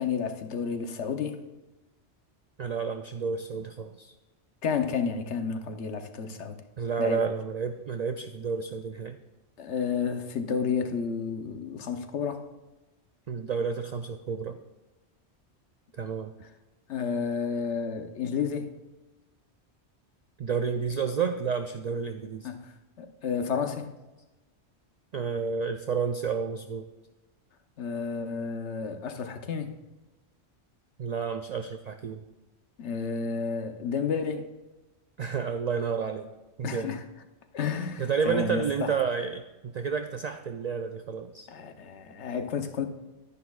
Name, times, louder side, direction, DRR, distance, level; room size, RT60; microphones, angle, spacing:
voice 1, 0.0-1.4 4.6-6.6 7.0-7.2 9.6-12.4 16.9-18.7 22.4-22.7 23.0-23.9 27.8-29.7 32.8-34.5 36.6-37.0 37.5-38.9 41.5-42.9, left 6 dB, 90° left, 7 dB, 1.1 m, -31 dB
voice 2, 2.6-4.1 6.8-9.2 13.3-14.6 15.9-16.3 20.4-22.5 25.1-26.8 31.0-32.2 35.2-36.3 36.6-36.9 38.0-41.5, right 6 dB, 60° right, 7 dB, 0.4 m, -30 dB
11.5 x 10.5 x 2.3 m, 1.1 s
omnidirectional pair, 1.1 m